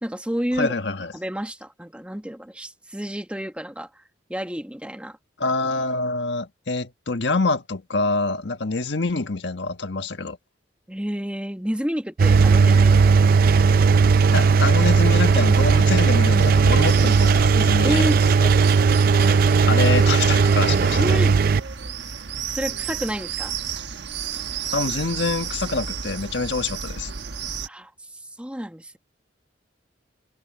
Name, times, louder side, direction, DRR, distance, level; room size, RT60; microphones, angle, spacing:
voice 1, 0.0-0.7 1.1-4.0 4.3-5.2 10.9-13.3 17.8-18.2 19.2-19.8 21.0-21.4 22.5-23.6 27.7-29.0, equal, 5° right, 1.1 m, -30 dB
voice 2, 0.6-1.1 5.4-10.4 14.3-18.0 18.4-18.5 19.6-21.2 24.7-27.1, left 3 dB, 75° left, 1.4 m, -26 dB
Engine, 12.2-21.6, right 5 dB, 50° right, 0.4 m, -17 dB
sound 1, 16.4-27.7, right 6 dB, 75° right, 1.3 m, -32 dB
head